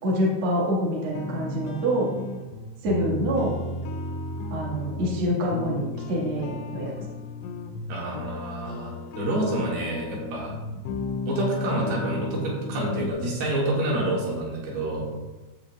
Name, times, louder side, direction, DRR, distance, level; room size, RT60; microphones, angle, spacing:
voice 1, 0.0-2.1 2.8-3.6 4.5-6.9, equal, 75° right, -4 dB, 1.2 m, -26 dB
sound 1, 1.1-13.1, left 2 dB, 90° left, 2.4 m, -34 dB
voice 2, 7.9-8.9 9.1-10.5 11.3-15.0, right 1 dB, 60° right, -4 dB, 3.5 m, -28 dB
12.5 x 8.0 x 2.4 m, 1.1 s
omnidirectional pair, 5.8 m